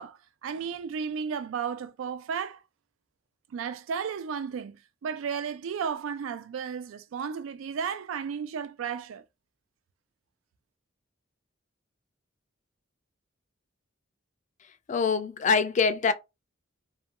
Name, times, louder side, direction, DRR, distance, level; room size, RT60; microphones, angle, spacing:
voice 1, 0.0-2.6 3.5-9.2, right 6 dB, 90° right, 0.3 m, -34 dB
voice 2, 14.9-16.1, left 5 dB, 40° left, 0.3 m, -24 dB
2.4 x 2.2 x 2.8 m
head